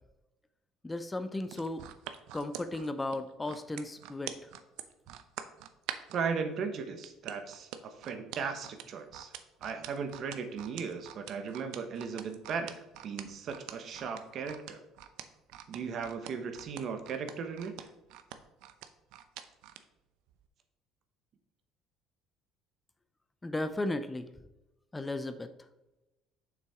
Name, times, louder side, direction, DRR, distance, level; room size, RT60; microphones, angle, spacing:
voice 1, 0.8-1.9 2.3-4.3 23.4-24.3 24.9-25.5, left 2 dB, 15° left, 10 dB, 0.6 m, -35 dB
sound 1, 1.4-6.2 7.0-19.8 20.3-20.4, right 11 dB, 80° right, 0.6 m, -45 dB
voice 2, 6.1-9.3 9.6-14.8 15.7-17.9, right 5 dB, 55° right, 7 dB, 1.1 m, -37 dB
7.4 x 5.9 x 3.6 m, 0.99 s
supercardioid pair, 100°, 0 cm